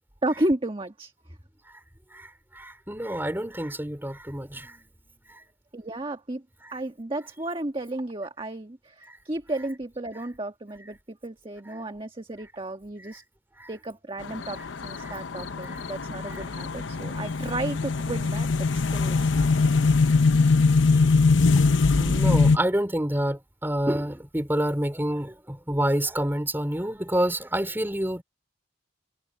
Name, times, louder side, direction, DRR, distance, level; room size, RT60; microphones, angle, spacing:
voice 1, 0.2-1.1 5.7-6.4 6.7-13.2 13.7-19.5 19.8-19.9, right 1 dB, 30° right, 1.4 m, -33 dB
voice 2, 2.5-4.9 9.1-9.2 11.7-11.8 13.6-13.7 15.0-15.2 15.7-15.8 16.3-16.4 21.0-21.2 22.0-28.2, right 1 dB, 10° right, 3.7 m, -28 dB
sound 1, 14.2-22.6, left 4 dB, 85° left, 0.8 m, -22 dB
head